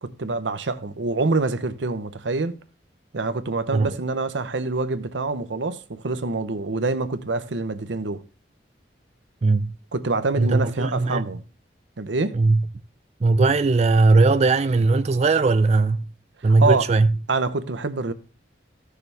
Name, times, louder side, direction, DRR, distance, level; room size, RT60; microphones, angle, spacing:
voice 1, 0.0-2.6 3.1-8.2 9.9-11.4 12.0-12.4 16.4-16.9 17.3-18.1, right 3 dB, 85° right, 0.8 m, -26 dB
voice 2, 9.4-9.7 10.4-11.2 12.3-12.6 13.2-16.1 16.4-17.1, right 3 dB, 35° right, 0.4 m, -19 dB
15.0 x 6.6 x 3.4 m
head